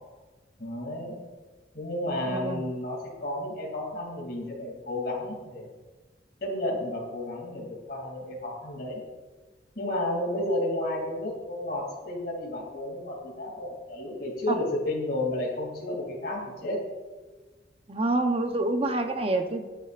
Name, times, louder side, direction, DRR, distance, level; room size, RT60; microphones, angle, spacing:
voice 1, 0.6-1.2 1.7-5.7 6.4-9.0 9.8-16.8, left 1 dB, 55° left, -3 dB, 2.9 m, -32 dB
voice 2, 2.3-2.7 14.5-14.6 17.9-19.7, right 2 dB, 30° right, 5 dB, 0.9 m, -27 dB
21.0 x 9.8 x 2.5 m, 1.3 s
head